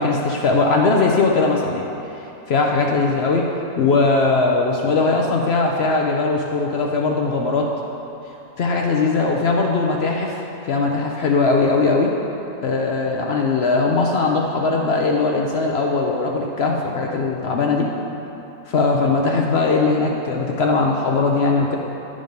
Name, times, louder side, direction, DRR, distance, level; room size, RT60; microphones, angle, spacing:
voice 1, 0.0-1.8 2.5-3.4 3.8-7.7 8.6-10.4 10.7-12.1 12.6-17.9 18.7-21.8, left 3 dB, 75° left, 0 dB, 0.5 m, -19 dB
10.5 x 5.0 x 5.3 m, 2.8 s
omnidirectional pair, 1.9 m